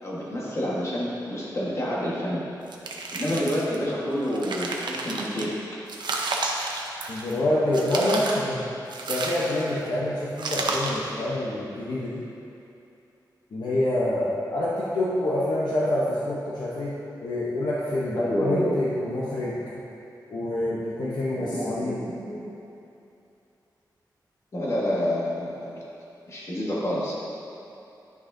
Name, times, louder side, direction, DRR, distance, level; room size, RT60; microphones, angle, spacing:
voice 1, 0.0-2.4 3.1-5.6 18.2-18.8 21.3-22.5 24.5-25.8 26.3-27.1, equal, 40° left, -6 dB, 1.5 m, -28 dB
sound 1, 2.7-3.7 4.2-5.4 5.9-7.4 7.7-8.5 8.9-9.8 10.4-11.1, right 3 dB, 75° right, 0.7 m, -31 dB
voice 2, 7.1-8.7 9.1-12.2 13.5-16.9 17.2-19.6 20.3-22.0, left 1 dB, 65° left, -7 dB, 0.9 m, -27 dB
10.5 x 6.3 x 2.7 m, 2.7 s
wide cardioid pair, 170°, 8 cm